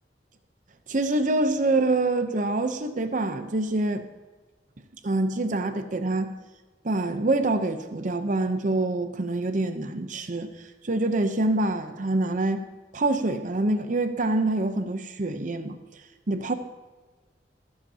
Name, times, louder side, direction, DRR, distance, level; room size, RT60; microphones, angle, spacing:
voice 1, 0.9-4.0 5.0-6.3 6.8-10.5 10.8-12.6 12.9-15.8 16.3-16.5, right 2 dB, 45° right, 8 dB, 0.7 m, -25 dB
14.0 x 12.5 x 2.8 m, 1.3 s
head